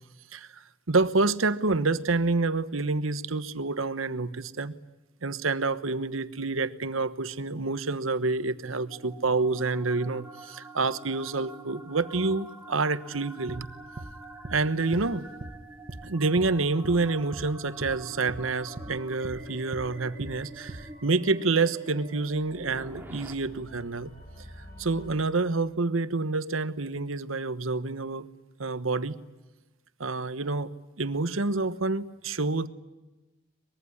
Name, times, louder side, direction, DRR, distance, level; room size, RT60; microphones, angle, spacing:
voice 1, 0.3-4.7 5.2-13.7 14.5-15.3 16.0-24.1 24.8-28.3 28.6-29.1 30.0-30.7 31.0-32.7, right 3 dB, 85° right, 13 dB, 1.2 m, -28 dB
sound 1, 8.3-23.3, right 2 dB, 10° right, 2.5 m, -46 dB
sound 2, 13.5-13.6 14.0-14.1 14.4-14.6 14.9-15.1 15.4-15.6 15.9-16.0 16.4-16.5 16.8-17.0 17.3-17.5 17.8-18.0 18.3-18.4 18.8-18.9 19.2-19.4 19.7-19.9 20.2-20.4 20.7-20.8, right 1 dB, 45° right, 1.2 m, -39 dB
sound 3, 19.3-25.1, left 1 dB, 45° left, 7.0 m, -51 dB
24.0 x 22.0 x 9.8 m, 1.1 s
head